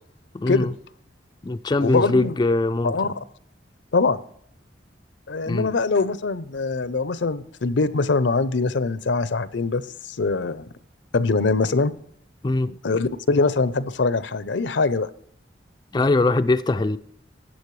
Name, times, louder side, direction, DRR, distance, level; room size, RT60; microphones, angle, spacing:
voice 1, 0.3-0.7 1.4-2.9 5.5-5.7 12.4-12.7 15.9-17.0, left 2 dB, 25° left, 0.4 m, -21 dB
voice 2, 1.8-2.3 2.8-3.2 3.9-4.2 5.3-10.7 11.1-11.9 12.7-15.1, left 3 dB, 75° left, 0.6 m, -23 dB
13.5 x 9.0 x 3.2 m
head